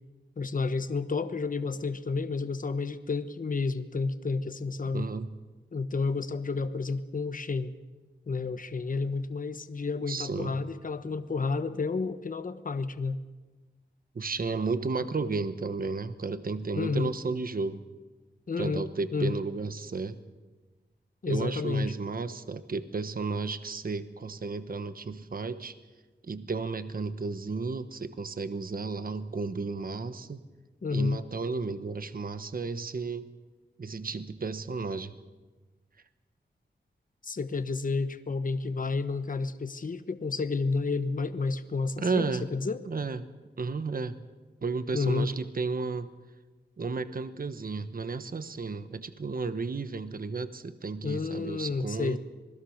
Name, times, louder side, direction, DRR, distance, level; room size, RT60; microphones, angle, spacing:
voice 1, 0.4-5.1 5.7-7.7 8.3-13.2 16.7-17.1 18.5-19.3 21.2-21.9 30.8-31.2 37.2-42.8 44.9-45.3 51.0-52.2, left 4 dB, 45° left, 11 dB, 1.2 m, -30 dB
voice 2, 4.9-5.3 10.1-10.5 14.1-17.8 18.6-20.2 21.3-25.7 26.3-30.4 30.9-33.3 33.8-35.1 42.0-42.4 42.8-43.2 43.6-44.2 44.6-46.1 46.8-52.2, right 4 dB, 50° right, 11 dB, 1.2 m, -33 dB
27.0 x 20.0 x 6.5 m, 1.3 s
wide cardioid pair, 105°, 19 cm